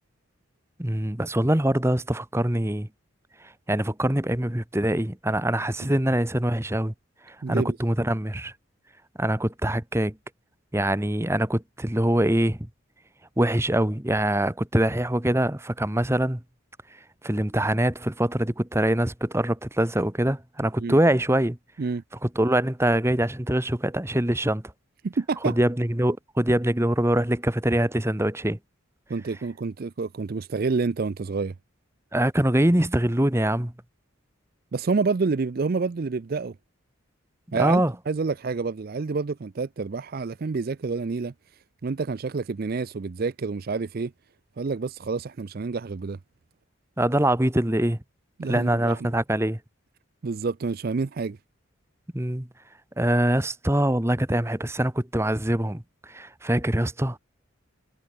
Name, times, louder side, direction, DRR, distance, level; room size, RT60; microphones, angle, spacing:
voice 1, 0.8-2.9 3.7-6.9 7.3-8.5 9.2-10.2 10.7-12.7 13.4-16.4 17.2-21.6 22.2-24.6 25.4-28.6 32.1-33.7 37.5-37.9 47.0-48.0 48.4-49.6 52.1-52.5 53.0-57.2, right 1 dB, 10° right, 1.2 m, -24 dB
voice 2, 7.4-7.8 20.8-21.0 21.8-22.0 25.0-25.6 29.1-31.5 34.7-36.5 37.5-41.3 41.8-44.1 44.6-46.2 48.4-49.0 50.2-51.4, right 4 dB, 45° right, 0.4 m, -28 dB
head